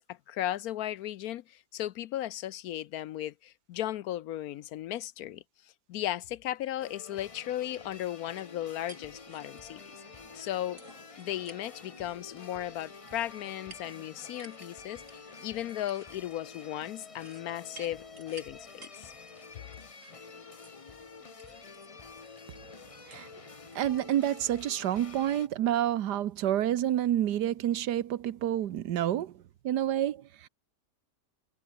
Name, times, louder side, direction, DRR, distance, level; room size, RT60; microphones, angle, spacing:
voice 1, 0.0-5.4 5.9-9.8 10.3-10.8 11.2-19.1, left 13 dB, 70° left, 1.0 m, -36 dB
sound 1, 6.8-25.5, left 5 dB, 30° left, 0.6 m, -49 dB
sound 2, 8.4-23.8, right 3 dB, 50° right, 4.1 m, -56 dB
voice 2, 23.7-29.3 29.6-30.5, right 11 dB, 80° right, 1.5 m, -28 dB
omnidirectional pair, 1.8 m